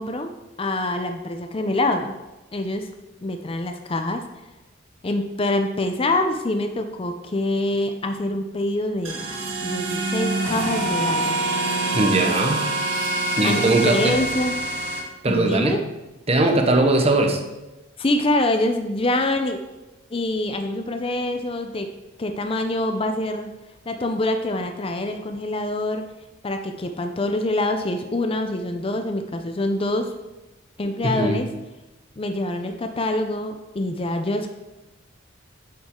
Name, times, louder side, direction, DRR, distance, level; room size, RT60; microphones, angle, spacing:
voice 1, 0.0-2.2 2.5-2.9 3.2-4.2 5.0-9.2 9.6-11.4 13.4-14.5 15.3-15.8 18.0-19.6 20.1-21.9 22.2-23.5 23.9-26.1 26.4-30.1 30.8-31.5 32.2-34.5, left 1 dB, 30° left, 6 dB, 0.5 m, -25 dB
sound 1, 9.0-15.0, right 2 dB, 80° right, 1.7 m, -25 dB
voice 2, 11.9-12.7 13.4-14.2 15.2-15.8 16.3-17.4 31.0-31.4, right 2 dB, 30° right, 4 dB, 0.9 m, -20 dB
8.3 x 7.5 x 3.7 m, 1.0 s
head